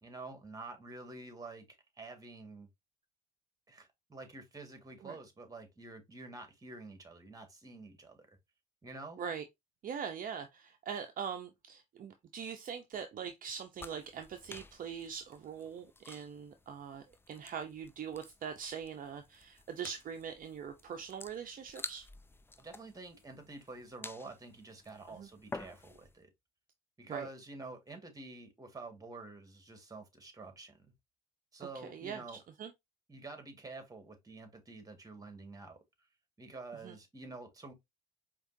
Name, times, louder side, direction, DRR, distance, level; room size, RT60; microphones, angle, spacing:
voice 1, 0.0-2.7 3.7-8.3 8.8-9.3 22.6-26.3 27.0-30.9 31.5-32.4 33.1-35.8 36.4-37.7, right 3 dB, 20° right, 1.7 m, -48 dB
voice 2, 9.8-22.1 25.1-25.3 27.1-27.3 31.6-32.7 36.8-37.0, right 7 dB, 45° right, 0.6 m, -42 dB
sound 1, 13.8-26.2, left 3 dB, 10° left, 0.4 m, -51 dB
4.9 x 2.9 x 2.6 m
hypercardioid pair, 65°, 20 cm